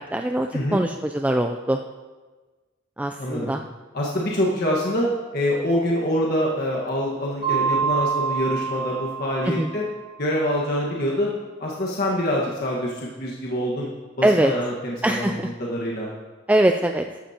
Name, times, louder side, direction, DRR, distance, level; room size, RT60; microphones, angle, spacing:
voice 1, 0.0-1.8 3.0-3.6 9.5-9.7 14.2-14.5 15.0-15.5 16.5-17.0, right 1 dB, 10° right, 5 dB, 0.3 m, -22 dB
voice 2, 0.5-0.8 3.2-3.5 3.9-5.1 5.3-9.8 10.2-11.3 11.6-13.9 14.2-16.1, left 1 dB, 55° left, -4 dB, 1.6 m, -25 dB
Mallet percussion, 7.4-10.0, right 6 dB, 30° right, 3.7 m, -26 dB
14.0 x 12.0 x 2.9 m, 1.3 s
head